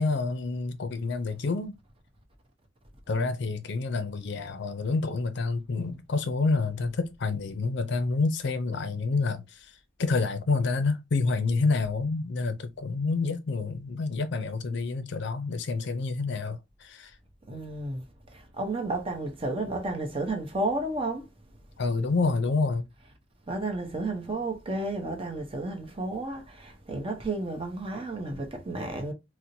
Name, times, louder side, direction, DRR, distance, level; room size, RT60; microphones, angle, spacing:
voice 1, 0.0-1.8 3.1-9.7 10.0-17.1 21.8-22.9, left 3 dB, 60° left, 0.5 m, -28 dB
voice 2, 17.5-18.0 18.6-21.3 23.5-29.1, right 2 dB, 30° right, 0.7 m, -32 dB
4.2 x 2.1 x 2.6 m
head